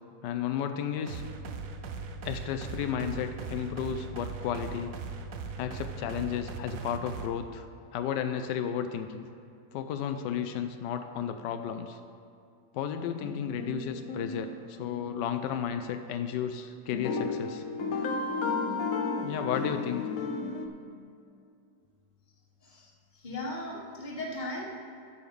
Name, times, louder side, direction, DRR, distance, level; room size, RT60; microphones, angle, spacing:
voice 1, 0.2-1.2 2.2-5.0 5.6-7.7 7.9-9.3 9.7-12.0 12.7-17.7 19.2-20.1, left 8 dB, 90° left, 8 dB, 1.2 m, -33 dB
sound 1, 1.1-7.3, right 4 dB, 60° right, 1.0 m, -39 dB
sound 2, 13.0-15.4 16.9-20.7, left 4 dB, 60° left, 1.1 m, -34 dB
voice 2, 22.6-24.8, left 1 dB, 30° left, -2 dB, 1.5 m, -38 dB
9.5 x 5.7 x 6.7 m, 2.5 s
omnidirectional pair, 1.8 m